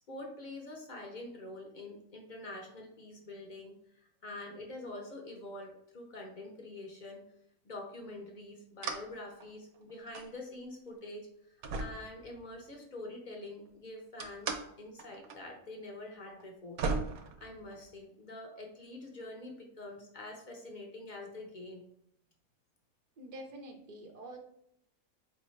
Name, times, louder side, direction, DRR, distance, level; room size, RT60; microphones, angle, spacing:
voice 1, 0.1-7.2 7.6-16.8 17.4-21.8, left 2 dB, 50° left, 1 dB, 0.5 m, -46 dB
sound 1, 8.8-9.1 9.4-10.3 10.9-11.0 11.6-12.7 14.2-14.7 15.0-15.4 15.6-15.7 16.4-16.5 16.8-18.0, right 4 dB, 80° right, 1.1 m, -37 dB
voice 2, 23.2-24.4, right 1 dB, 65° right, 2 dB, 0.4 m, -47 dB
4.3 x 2.7 x 3.1 m, 0.74 s
omnidirectional pair, 1.5 m